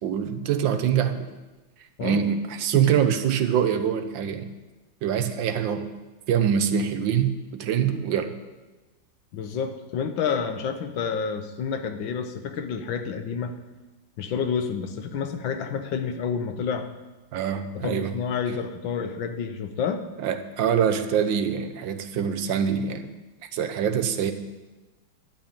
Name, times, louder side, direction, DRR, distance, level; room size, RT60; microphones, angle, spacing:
voice 1, 0.0-1.2 2.0-4.5 5.0-5.8 6.3-8.3 17.3-18.1 20.2-23.1 23.4-24.3, right 8 dB, 75° right, 8 dB, 1.5 m, -24 dB
voice 2, 2.0-2.3 2.7-3.0 9.3-13.5 14.2-16.9 17.8-20.1, left 6 dB, 80° left, 7 dB, 1.6 m, -29 dB
11.5 x 5.8 x 8.7 m, 1.2 s
omnidirectional pair, 2.1 m